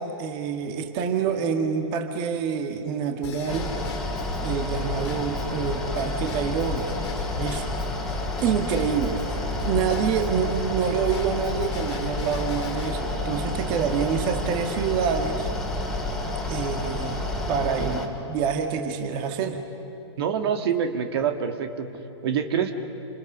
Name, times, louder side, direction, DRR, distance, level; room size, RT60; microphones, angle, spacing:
voice 1, 0.0-3.7 4.4-6.9 7.3-7.7 8.4-9.2 9.6-15.5 16.5-17.2 17.5-19.6, right 7 dB, 35° right, 4 dB, 1.9 m, -27 dB
Drum kit / Drum / Bell, 3.2-12.9, left 6 dB, 70° left, 2.7 m, -40 dB
Mechanical fan, 3.5-18.1, left 1 dB, 5° left, 2.6 m, -30 dB
voice 2, 20.2-21.9 22.2-22.7, right 7 dB, 55° right, 6 dB, 2.1 m, -25 dB
29.0 x 26.5 x 6.2 m, 2.9 s
hypercardioid pair, 140°, 15 cm